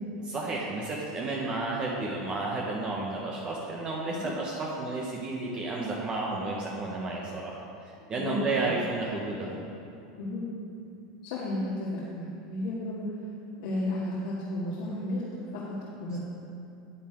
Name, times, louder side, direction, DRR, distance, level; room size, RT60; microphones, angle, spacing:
voice 1, 0.2-7.6 7.8-9.6, right 2 dB, 30° right, -3 dB, 1.3 m, -32 dB
voice 2, 10.2-10.5 11.2-13.0 13.6-16.2, left 1 dB, 75° left, -7 dB, 2.0 m, -33 dB
9.9 x 8.4 x 4.6 m, 2.6 s
supercardioid pair, 120°, 3 cm